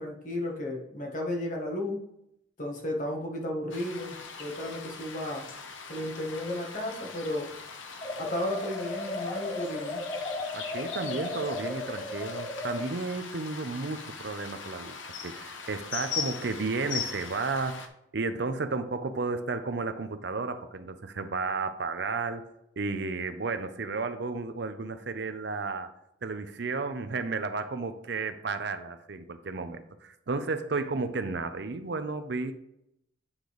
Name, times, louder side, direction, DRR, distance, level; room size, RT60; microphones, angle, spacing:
voice 1, 0.0-2.0 2.6-5.5 5.9-7.5 8.2-10.0, left 1 dB, 40° left, 0 dB, 1.6 m, -33 dB
sound 1, 3.7-17.9, left 5 dB, 85° left, 0.9 m, -40 dB
sound 2, 8.0-12.9, left 2 dB, 25° left, 0.6 m, -36 dB
voice 2, 10.5-15.0 15.2-17.9 18.1-22.4 22.8-25.9 26.2-32.5, right 3 dB, 60° right, 9 dB, 0.6 m, -33 dB
8.8 x 3.9 x 4.8 m, 0.79 s
head